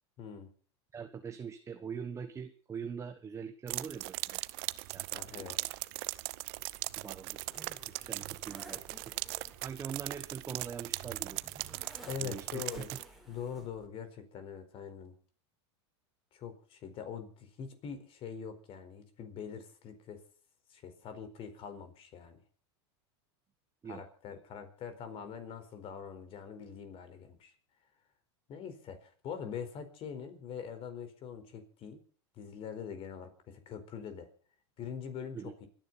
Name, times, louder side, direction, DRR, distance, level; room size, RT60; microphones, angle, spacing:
voice 1, 0.2-0.5 5.1-5.6 12.0-12.9 13.3-15.1 16.3-20.2 20.7-22.4 23.8-27.5 28.5-32.0 32.4-34.3 34.8-35.7, left 7 dB, 40° left, 9 dB, 4.4 m, -43 dB
voice 2, 0.9-4.4 4.9-5.6 7.0-7.4 8.0-9.1 9.6-11.4 12.2-13.0 23.8-24.0 35.3-35.5, right 6 dB, 20° right, 9 dB, 1.1 m, -43 dB
sound 1, 3.7-13.0, right 23 dB, 60° right, 0.8 m, -39 dB
Zipper (clothing), 6.5-13.9, right 1 dB, ahead, 4.3 m, -55 dB
28.0 x 10.5 x 4.2 m, 0.41 s
supercardioid pair, 120°, 15 cm